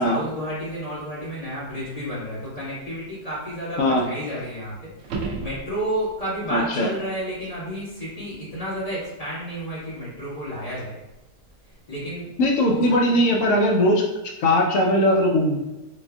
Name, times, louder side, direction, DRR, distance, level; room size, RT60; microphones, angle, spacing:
voice 1, 0.0-11.0 11.9-12.2 12.7-12.8 13.1-13.2, equal, 25° left, -10 dB, 1.5 m, -31 dB
sound 1, 5.0-6.2 11.1-11.2, right 4 dB, 75° right, 0.6 m, -32 dB
voice 2, 6.5-6.9 12.4-14.0 14.4-15.6, left 1 dB, 65° left, 0 dB, 0.9 m, -19 dB
4.2 x 2.5 x 2.3 m, 1.0 s
omnidirectional pair, 1.7 m